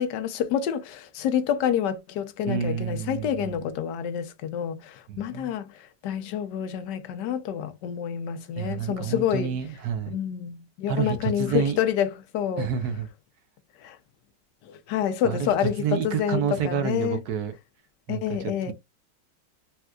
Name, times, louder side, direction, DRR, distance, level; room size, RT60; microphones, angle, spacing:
voice 1, 0.0-9.6 10.1-12.7 13.8-14.0 14.6-17.2 18.1-18.7, left 9 dB, 75° left, 1.2 m, -28 dB
voice 2, 2.5-3.5 5.1-5.5 8.6-10.1 10.9-11.8 12.6-13.1 15.2-17.5 18.1-18.7, right 7 dB, 70° right, 1.0 m, -29 dB
4.3 x 2.4 x 2.2 m
omnidirectional pair, 1.9 m